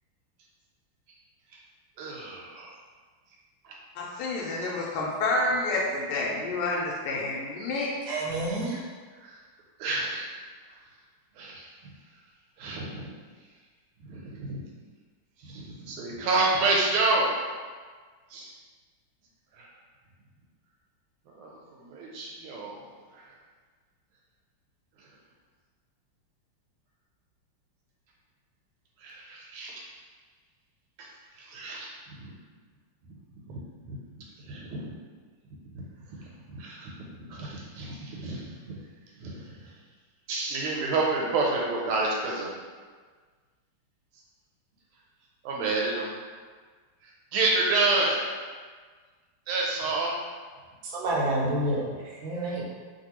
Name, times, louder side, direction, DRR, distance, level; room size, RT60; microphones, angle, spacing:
voice 1, 2.0-2.7 3.6-3.7 9.2-9.4 9.8-10.3 11.4-11.7 12.6-13.1 14.0-14.6 15.4-17.3 18.3-18.5 19.5-19.7 21.3-22.9 23.1-23.3 25.0-25.1 29.0-29.8 31.0-31.1 31.4-32.3 33.1-33.2 33.5-34.0 34.4-34.9 35.7-35.8 36.1-38.8 39.2-39.7 40.3-42.5 45.4-46.1 47.0-48.4 49.5-50.2, right 3 dB, 85° right, -2 dB, 1.5 m, -29 dB
voice 2, 3.9-8.0, left 2 dB, 80° left, -3 dB, 1.4 m, -29 dB
voice 3, 8.1-8.8 50.8-52.6, right 1 dB, 70° right, -4 dB, 1.4 m, -29 dB
3.3 x 2.6 x 2.9 m, 1.5 s
omnidirectional pair, 2.4 m